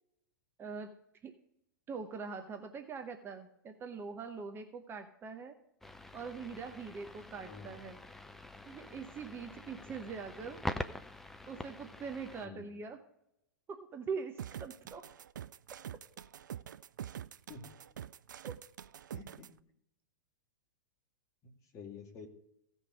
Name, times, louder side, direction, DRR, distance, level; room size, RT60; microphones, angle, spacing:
voice 1, 0.6-0.9 1.2-1.3 1.9-5.6 6.1-8.0 8.6-10.6 11.5-13.0 13.7-15.0 18.4-18.5, right 5 dB, 20° right, 6 dB, 0.9 m, -43 dB
sound 1, 5.8-12.5, left 1 dB, 5° left, 0.5 m, -45 dB
voice 2, 7.4-7.8 12.4-12.7 17.5-17.7 19.1-19.6 21.7-22.3, left 4 dB, 30° left, 3 dB, 2.0 m, -49 dB
sound 2, 14.4-19.5, right 9 dB, 65° right, 0.4 m, -45 dB
16.0 x 5.4 x 4.9 m, 0.80 s
figure-of-eight pair, 100°, 11 cm